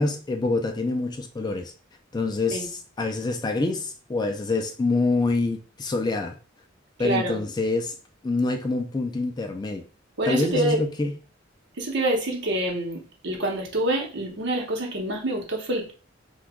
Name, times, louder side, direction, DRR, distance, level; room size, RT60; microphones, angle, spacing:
voice 1, 0.0-1.7 2.1-6.4 7.0-7.9 8.2-9.8 10.3-11.2, left 3 dB, 20° left, 5 dB, 0.3 m, -26 dB
voice 2, 7.0-7.4 10.2-10.8 11.8-15.9, right 1 dB, 65° right, 0 dB, 0.9 m, -26 dB
2.9 x 2.3 x 3.5 m, 0.37 s
head